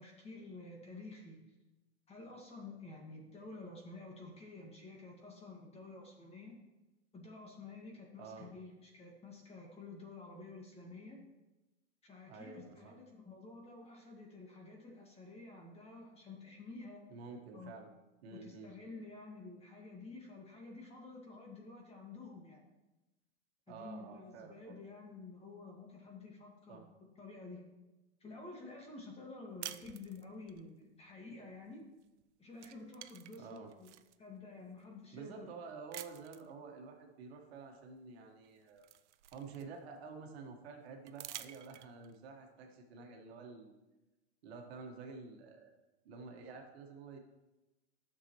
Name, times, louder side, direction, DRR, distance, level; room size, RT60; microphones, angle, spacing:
voice 1, 0.0-1.4 2.1-6.6 7.1-11.2 12.0-17.0 17.5-17.7 18.3-22.6 23.7-27.6 28.2-31.9 32.4-33.9 34.2-35.5, left 3 dB, 20° left, 0 dB, 1.8 m, -50 dB
voice 2, 8.2-8.5 12.3-12.9 17.1-17.9 18.2-18.7 23.7-24.8 26.7-26.8 33.4-33.7 35.1-38.9 39.3-43.7 44.4-45.7 46.0-47.2, right 4 dB, 65° right, 2 dB, 1.6 m, -50 dB
sound 1, 29.6-30.6 32.0-32.2 32.5-34.2 34.8-34.9 35.9-36.5 38.0-38.1 38.4-40.0 41.1-42.2, right 13 dB, 85° right, 0.6 m, -49 dB
11.0 x 6.9 x 3.1 m, 1.0 s
hypercardioid pair, 125°, 34 cm